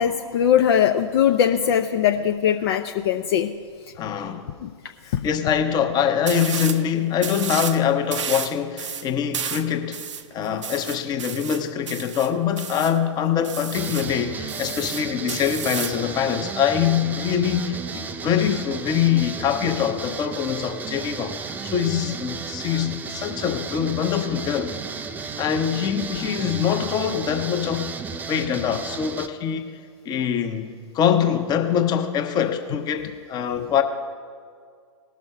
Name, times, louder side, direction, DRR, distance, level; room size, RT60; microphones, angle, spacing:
voice 1, 0.0-3.5 4.6-4.7, left 9 dB, 50° left, 6 dB, 0.6 m, -20 dB
voice 2, 4.0-4.5 5.0-10.0 10.3-24.7 25.4-27.9 28.3-29.8 30.0-33.8, left 8 dB, 25° left, 7 dB, 0.9 m, -24 dB
sound 1, 6.3-6.8 7.2-7.8 8.1-13.0 13.4-14.1 14.5-16.0, right 7 dB, 70° right, 0.7 m, -32 dB
sound 2, 13.7-29.3, right 4 dB, 10° right, 0.4 m, -33 dB
18.5 x 6.3 x 5.5 m, 2.1 s
figure-of-eight pair, 110°, 16 cm